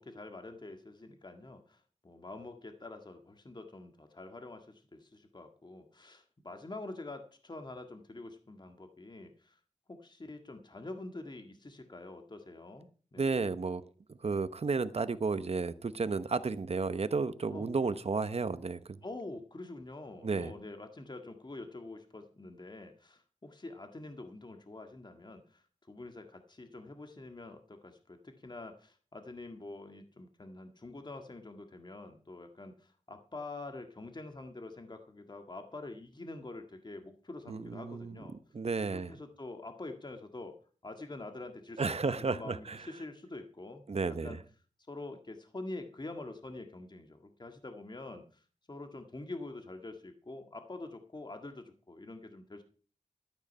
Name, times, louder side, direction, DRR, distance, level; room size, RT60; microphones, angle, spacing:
voice 1, 0.0-9.6 9.9-13.5 17.5-17.7 19.0-38.4 38.9-40.6 40.8-44.4 44.9-48.4 48.7-52.6, left 2 dB, 35° left, 6 dB, 1.8 m, -46 dB
voice 2, 13.2-13.8 14.2-19.0 20.2-20.5 37.5-38.2 38.5-39.1 41.8-42.8 43.9-44.4, right 4 dB, 55° right, 13 dB, 0.9 m, -32 dB
13.0 x 9.2 x 5.5 m, 0.40 s
wide cardioid pair, 80°, 12 cm